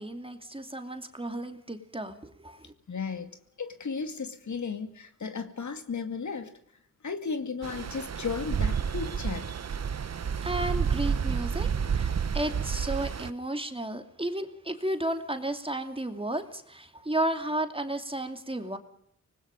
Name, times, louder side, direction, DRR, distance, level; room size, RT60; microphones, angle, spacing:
voice 1, 0.0-2.7 10.4-18.8, right 1 dB, 15° right, 2.6 m, -33 dB
voice 2, 2.9-3.3 3.6-6.5 7.0-9.5, left 5 dB, 60° left, 2.4 m, -34 dB
Stream, 7.6-13.3, right 7 dB, 50° right, 0.9 m, -30 dB
25.0 x 20.0 x 5.3 m
cardioid pair, 60°, 32 cm